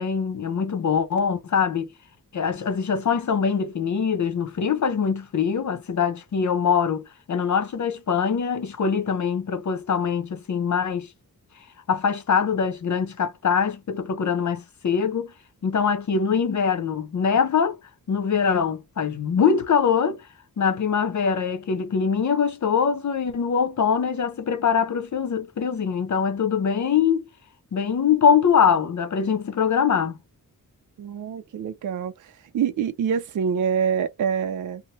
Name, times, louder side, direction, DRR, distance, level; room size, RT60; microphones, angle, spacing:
voice 1, 0.0-1.9 2.3-11.1 11.9-15.3 15.6-17.8 18.1-20.2 20.6-27.2 27.7-30.2, left 6 dB, 55° left, 0.7 m, -23 dB
voice 2, 31.0-34.8, right 7 dB, 60° right, 0.4 m, -26 dB
3.0 x 2.1 x 2.7 m
wide cardioid pair, 85°, 35 cm